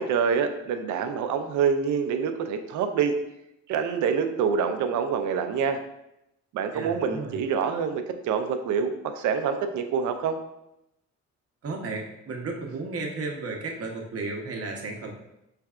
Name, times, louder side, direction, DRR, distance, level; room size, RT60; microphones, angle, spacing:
voice 1, 0.0-3.2 3.7-5.8 6.5-10.4, right 6 dB, 75° right, 7 dB, 0.5 m, -26 dB
voice 2, 6.7-7.4 11.6-15.1, right 3 dB, 50° right, 1 dB, 0.8 m, -34 dB
4.6 x 3.3 x 2.4 m, 0.85 s
cardioid pair, 90°, 30 cm